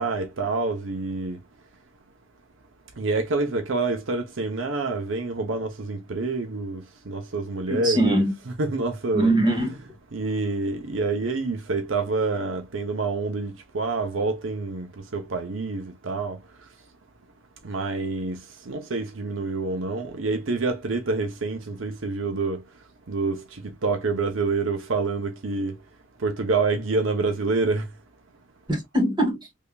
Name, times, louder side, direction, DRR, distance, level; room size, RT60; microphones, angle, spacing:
voice 1, 0.0-1.4 3.0-8.2 8.6-9.3 10.1-14.9 15.1-16.4 17.6-22.6 23.1-25.7 26.2-27.9, right 3 dB, 75° right, 0.8 m, -27 dB
voice 2, 7.7-8.3 9.1-9.8 28.7-29.5, right 1 dB, 25° right, 1.7 m, -22 dB
3.6 x 3.4 x 2.3 m
head